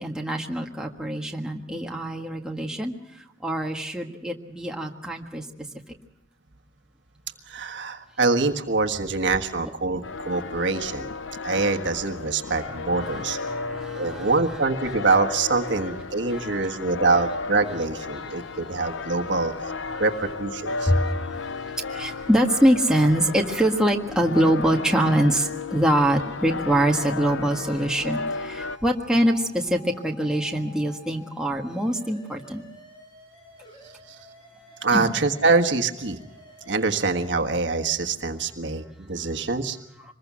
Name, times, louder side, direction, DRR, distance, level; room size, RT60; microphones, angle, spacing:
voice 1, 0.0-2.9 3.4-5.4 13.0-13.2 13.5-14.3 20.8-32.6 34.9-35.1, right 1 dB, 5° right, 0 dB, 1.6 m, -24 dB
voice 2, 7.5-11.1 11.4-13.4 13.9-19.5 20.0-20.9 34.8-36.2 36.7-39.8, right 3 dB, 65° right, 5 dB, 1.5 m, -24 dB
sound 1, 10.0-28.8, left 4 dB, 75° left, 0.7 m, -34 dB
sound 2, 26.4-37.4, left 1 dB, 25° left, 6.3 m, -50 dB
25.0 x 21.0 x 6.2 m, 0.87 s
head